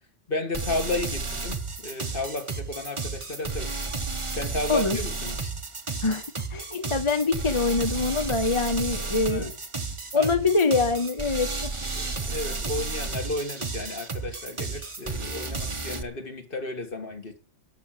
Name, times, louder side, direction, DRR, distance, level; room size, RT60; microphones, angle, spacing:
voice 1, 0.3-3.9 4.4-5.5 9.3-9.5 10.1-10.5 11.9-17.4, left 2 dB, 45° left, 5 dB, 2.0 m, -33 dB
sound 1, 0.5-16.0, right 3 dB, 25° right, 1.0 m, -32 dB
voice 2, 6.0-9.5 10.1-11.7, left 3 dB, 30° left, 8 dB, 0.8 m, -24 dB
11.5 x 6.4 x 9.1 m, 0.41 s
omnidirectional pair, 1.2 m